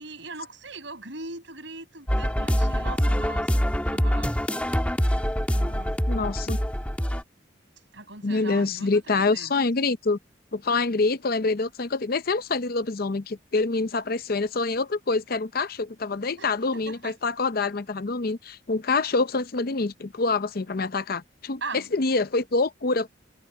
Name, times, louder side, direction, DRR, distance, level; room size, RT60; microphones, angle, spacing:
voice 1, 0.0-3.6 3.9-4.4 5.5-6.0 7.9-9.5 16.4-17.2 21.6-21.9, right 3 dB, 70° right, 7.2 m, -40 dB
sound 1, 2.1-7.2, equal, 5° left, 1.5 m, -24 dB
voice 2, 6.1-6.6 8.2-10.2 10.5-23.1, left 3 dB, 50° left, 0.6 m, -26 dB
head